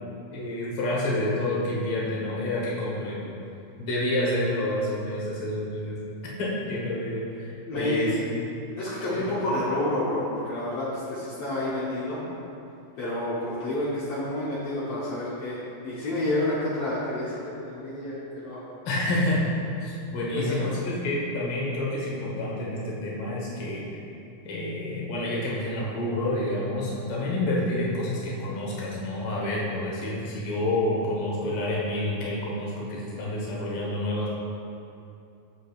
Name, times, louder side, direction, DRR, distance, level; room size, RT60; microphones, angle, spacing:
voice 1, 0.3-3.2 3.8-6.0 6.4-8.4 9.1-9.2 18.8-19.4 19.8-23.8 24.4-34.3, left 1 dB, 65° left, -5 dB, 1.3 m, -28 dB
voice 2, 7.7-8.2 8.7-12.2 13.0-18.6 20.3-20.8, left 1 dB, 80° left, -8 dB, 1.3 m, -29 dB
7.3 x 6.9 x 2.4 m, 2.7 s
omnidirectional pair, 4.1 m